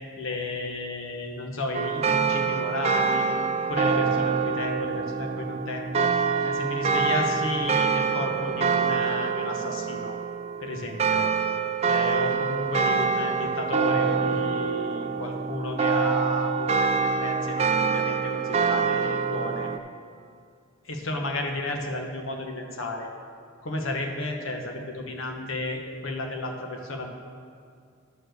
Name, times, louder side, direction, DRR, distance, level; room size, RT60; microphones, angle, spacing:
voice 1, 0.2-3.2 3.7-6.1 6.4-10.2 10.6-11.3 11.9-19.7 20.8-23.1 23.6-27.1, left 2 dB, 85° left, 2 dB, 1.1 m, -33 dB
sound 1, 1.7-19.8, right 5 dB, 30° right, 0.3 m, -25 dB
11.0 x 4.6 x 6.4 m, 2.2 s
head